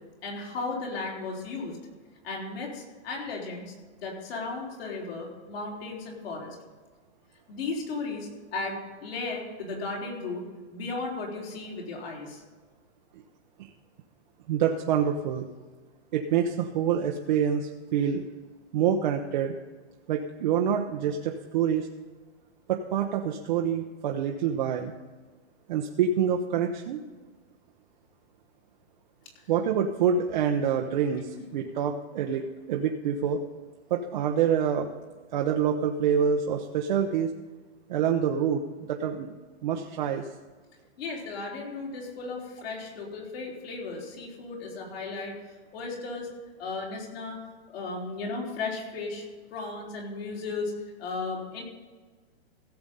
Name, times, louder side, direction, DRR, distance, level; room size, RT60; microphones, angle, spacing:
voice 1, 0.2-1.8 2.2-6.6 7.5-10.4 10.7-12.4 31.3-31.4 41.0-45.3 45.7-46.3 46.6-47.4 47.7-49.2 49.5-50.7 51.0-51.6, left 3 dB, 60° left, -2 dB, 3.9 m, -35 dB
voice 2, 14.5-15.5 16.1-18.2 18.7-19.5 20.1-21.9 22.7-24.9 25.7-27.0 29.5-33.4 33.9-34.9 35.3-37.3 37.9-38.6 38.9-39.4 39.6-40.3, right 8 dB, 40° right, 3 dB, 0.7 m, -26 dB
16.0 x 7.0 x 5.3 m, 1.3 s
hypercardioid pair, 160°, 34 cm